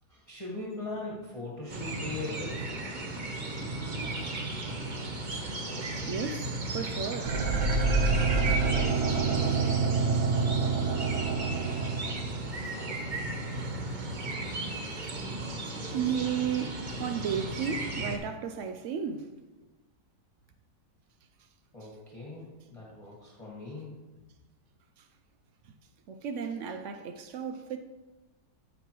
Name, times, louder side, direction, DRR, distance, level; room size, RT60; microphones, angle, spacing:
voice 1, 0.1-2.6 9.3-9.8 21.7-24.0, left 1 dB, 20° left, 1.7 m, -40 dB
sound 1, 1.7-18.2, right 2 dB, 35° right, 0.8 m, -35 dB
voice 2, 6.1-7.4 15.9-19.3 21.8-21.9 25.0-25.1 26.1-27.8, right 7 dB, 85° right, 0.6 m, -33 dB
sound 2, 7.2-12.4 12.8-12.9, right 4 dB, 70° right, 1.5 m, -27 dB
14.5 x 5.4 x 3.1 m
omnidirectional pair, 1.9 m